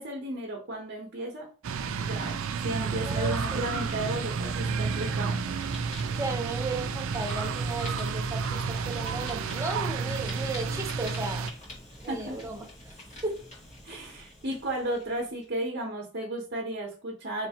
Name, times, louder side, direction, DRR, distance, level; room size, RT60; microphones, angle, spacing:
voice 1, 0.0-1.5 2.0-2.4 2.6-5.4 12.1-12.4 13.8-17.5, right 1 dB, 55° right, -1 dB, 0.9 m, -34 dB
sound 1, 1.6-11.5, right 5 dB, 75° right, 0.4 m, -31 dB
Fire, 2.2-15.5, left 1 dB, 35° left, 1.6 m, -48 dB
voice 2, 3.0-3.7 6.2-11.5 12.0-12.9 13.2-13.4, right 2 dB, 15° right, 2 dB, 0.6 m, -35 dB
4.0 x 3.2 x 2.8 m, 0.39 s
head